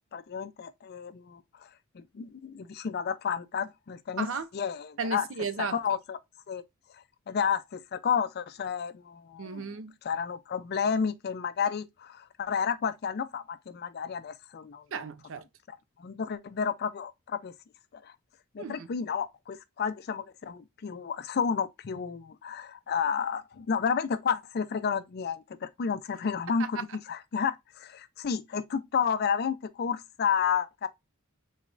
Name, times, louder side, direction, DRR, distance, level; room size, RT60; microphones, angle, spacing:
voice 1, 0.0-1.4 1.9-4.3 4.5-5.3 5.7-6.2 6.5-6.6 7.3-9.7 10.0-14.8 16.0-17.5 17.9-18.1 18.5-26.8 27.1-30.9, left 6 dB, 50° left, 0.4 m, -31 dB
voice 2, 4.2-4.5 5.0-5.8 9.4-9.9 14.9-15.4 18.6-18.9 26.8-26.9, right 5 dB, 70° right, 0.5 m, -34 dB
3.9 x 3.3 x 2.4 m
head